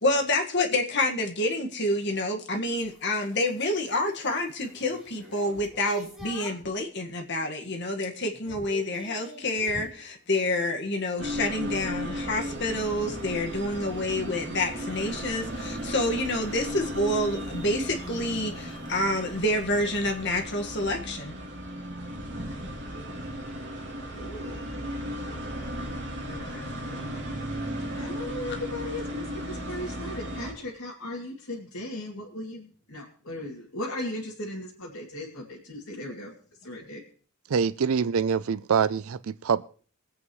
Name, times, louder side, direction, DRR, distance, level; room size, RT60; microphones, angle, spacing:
voice 1, 0.0-21.3, left 1 dB, 50° left, 1.7 m, -28 dB
sound 1, 2.7-6.8 7.3-7.7 7.9-10.0 12.5-20.9, right 2 dB, ahead, 2.9 m, -47 dB
sound 2, 11.2-30.5, equal, 55° right, 3.0 m, -35 dB
voice 2, 24.0-24.7 25.2-25.4 26.3-27.4 27.9-37.0, left 1 dB, 70° left, 2.5 m, -38 dB
voice 3, 37.5-39.6, right 6 dB, 75° right, 0.5 m, -25 dB
23.0 x 8.5 x 3.1 m
head